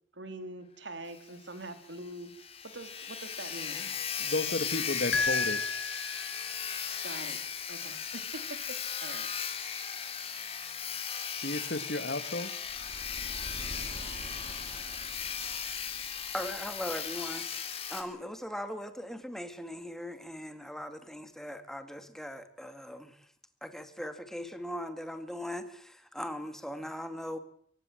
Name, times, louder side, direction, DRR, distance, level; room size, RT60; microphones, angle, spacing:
voice 1, 0.1-3.9 7.0-9.3, right 2 dB, 85° right, 3.4 m, -44 dB
Sawing, 1.1-1.2 1.5-1.6 2.0-2.1 2.3-18.0, left 7 dB, 35° left, 3.2 m, -37 dB
voice 2, 4.2-5.6 11.4-12.5, left 2 dB, 60° left, 1.6 m, -33 dB
sound 1, 5.1-6.7, left 4 dB, 90° left, 1.8 m, -32 dB
sound 2, 12.6-17.7, right 1 dB, 40° right, 2.0 m, -47 dB
voice 3, 16.3-23.3 23.6-27.4, equal, ahead, 2.1 m, -39 dB
24.5 x 17.0 x 7.7 m
head